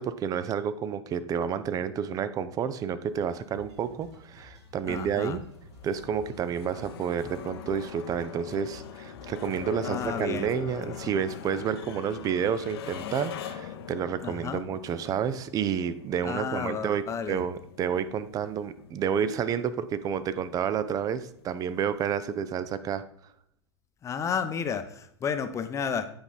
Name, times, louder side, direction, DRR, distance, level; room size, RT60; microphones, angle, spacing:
voice 1, 0.0-5.4 5.8-23.0, right 7 dB, 25° right, 13 dB, 0.5 m, -30 dB
sound 1, 3.1-22.4, left 8 dB, 60° left, 0.8 m, -44 dB
sound 2, 3.3-10.1, left 1 dB, 75° right, 2.7 m, -53 dB
voice 2, 4.8-5.4 9.8-10.5 14.2-14.6 16.2-17.4 24.0-26.1, left 7 dB, 20° left, 9 dB, 0.8 m, -32 dB
8.6 x 5.4 x 3.9 m, 0.70 s
hypercardioid pair, 110°, 14 cm